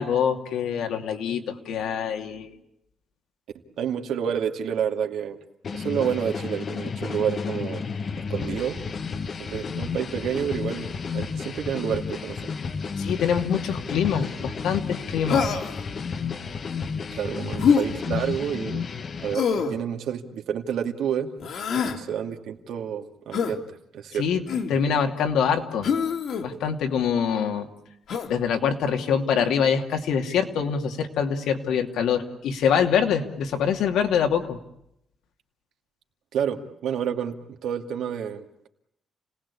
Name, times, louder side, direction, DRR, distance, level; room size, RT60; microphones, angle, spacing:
voice 1, 0.0-2.5 13.0-15.5 24.2-24.4 24.7-25.9 26.4-27.7 28.3-34.6, left 7 dB, 85° left, 4 dB, 2.7 m, -24 dB
voice 2, 3.8-5.4 5.7-7.9 8.2-8.8 9.5-12.4 17.2-18.8 19.2-21.3 21.7-23.6 23.9-24.3 36.3-38.7, right 8 dB, 75° right, 5 dB, 2.3 m, -29 dB
sound 1, 5.6-19.3, left 5 dB, 35° left, 1.1 m, -32 dB
Human voice, 15.3-15.8 17.6-17.9 19.3-19.8 21.4-22.0 23.3-23.6 24.5-24.8 25.8-26.4 28.1-28.3, left 6 dB, 60° left, 2.5 m, -24 dB
29.5 x 19.5 x 8.5 m, 0.80 s
cardioid pair, 160°, 0 cm